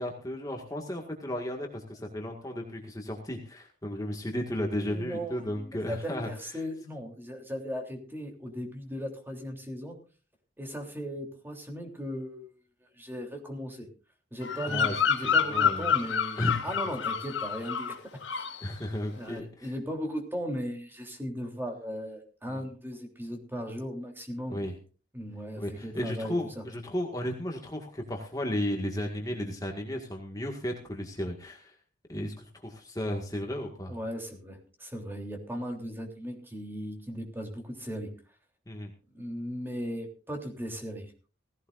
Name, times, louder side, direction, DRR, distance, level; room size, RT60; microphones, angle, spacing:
voice 1, 0.0-6.6 14.6-15.9 16.4-16.6 18.6-19.7 22.5-22.7 24.5-24.7 25.6-31.8 32.1-34.0 38.7-38.9, left 1 dB, 20° left, 1 dB, 1.9 m, -34 dB
voice 2, 4.8-10.0 10.6-12.5 12.9-13.9 14.3-18.0 19.1-24.6 25.1-26.6 33.9-38.1 39.1-41.1, equal, 10° right, 2 dB, 3.3 m, -37 dB
Bird vocalization bird call bird song, 14.4-18.0 18.2-18.6, left 7 dB, 80° left, 2.2 m, -28 dB
17.5 x 16.5 x 2.6 m, 0.37 s
head